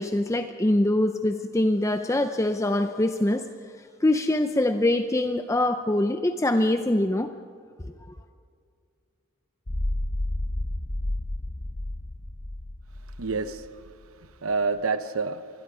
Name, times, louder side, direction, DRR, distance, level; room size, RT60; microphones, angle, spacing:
voice 1, 0.0-3.5 4.0-7.3, left 1 dB, 15° left, 8 dB, 0.5 m, -24 dB
sound 1, 9.7-13.9, left 1 dB, 35° left, 1.1 m, -31 dB
voice 2, 13.1-15.5, right 4 dB, 85° right, 12 dB, 1.0 m, -29 dB
26.0 x 20.5 x 5.0 m, 2.3 s
head